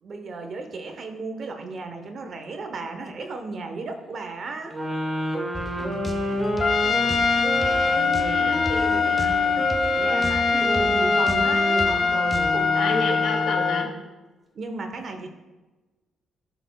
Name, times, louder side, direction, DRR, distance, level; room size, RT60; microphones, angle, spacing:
voice 1, 0.0-4.7 10.0-12.9 14.5-15.3, right 3 dB, 50° right, 6 dB, 0.8 m, -35 dB
sound 1, 4.7-13.9, equal, 20° right, 1.3 m, -28 dB
sound 2, 5.5-12.5, left 1 dB, 10° left, 0.7 m, -35 dB
Trumpet, 6.6-13.9, left 5 dB, 45° left, 0.3 m, -23 dB
voice 2, 7.7-9.5 12.7-13.9, left 2 dB, 75° left, 1 dB, 1.5 m, -31 dB
11.0 x 4.0 x 2.3 m, 1.2 s
cardioid pair, 90°, 0 cm